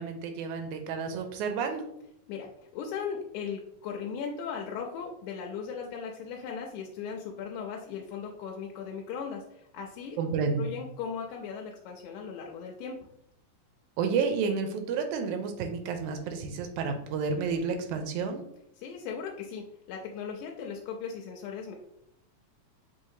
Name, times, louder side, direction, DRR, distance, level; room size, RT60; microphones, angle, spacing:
voice 1, 0.0-1.9 10.2-10.7 14.0-18.4, right 5 dB, 85° right, 6 dB, 2.0 m, -30 dB
voice 2, 2.3-10.2 10.6-13.0 18.8-21.8, left 6 dB, 90° left, 0 dB, 2.0 m, -38 dB
5.6 x 3.1 x 2.6 m, 0.76 s
omnidirectional pair, 3.4 m